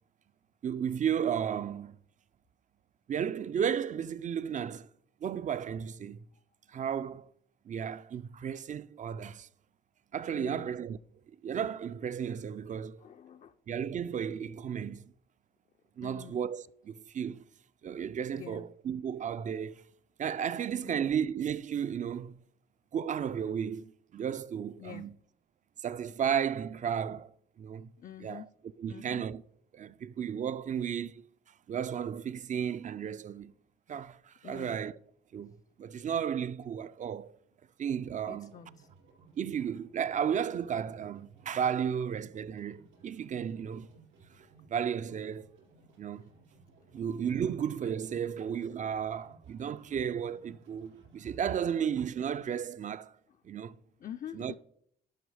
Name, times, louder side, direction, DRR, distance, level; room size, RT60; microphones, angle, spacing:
voice 1, 0.6-2.0 3.1-4.9 5.2-6.2 6.7-7.3 7.7-9.5 10.1-11.0 11.4-13.0 13.7-15.1 16.0-17.5 17.8-19.8 20.2-22.4 22.9-25.1 25.8-27.3 27.6-27.9 28.2-28.4 28.8-29.4 29.7-31.3 31.7-33.5 33.9-35.0 35.3-37.4 37.8-38.5 39.4-43.9 44.7-45.5 46.0-46.3 46.9-53.1 53.4-53.8 54.3-54.6, right 8 dB, 40° right, 0.4 m, -34 dB
voice 2, 10.3-10.7 13.0-13.6 16.0-16.4 18.3-18.7 20.8-21.1 24.8-25.1 28.0-28.5 28.9-29.2 34.4-34.8 38.3-38.9 54.0-54.6, left 9 dB, 40° left, 0.4 m, -46 dB
sound 1, 38.0-52.7, right 4 dB, 80° right, 4.4 m, -61 dB
11.5 x 5.0 x 4.8 m
cardioid pair, 90°, 20 cm